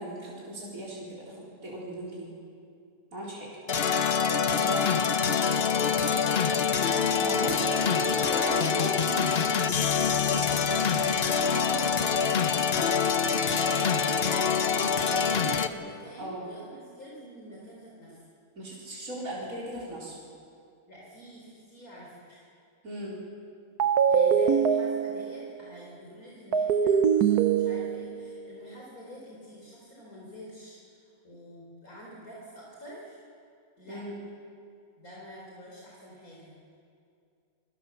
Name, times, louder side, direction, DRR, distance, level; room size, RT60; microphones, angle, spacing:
voice 1, 0.0-2.3 3.1-3.5 4.5-4.9 7.1-7.6 7.9-8.8 9.1-9.2 16.2-16.4 18.6-20.2 22.8-23.2 33.9-34.1, right 1 dB, 60° right, -6 dB, 4.6 m, -37 dB
sound 1, 3.7-15.7, left 6 dB, 45° left, 1.1 m, -25 dB
voice 2, 4.3-6.6 7.4-8.9 9.3-12.4 13.2-18.2 20.9-22.4 23.8-30.8 31.2-33.2 33.8-34.0 35.0-36.5, right 1 dB, 65° left, -4 dB, 4.8 m, -46 dB
sound 2, 23.8-25.5 26.5-28.2, right 7 dB, 75° right, 1.5 m, -23 dB
28.0 x 22.0 x 7.1 m, 2.5 s
omnidirectional pair, 1.6 m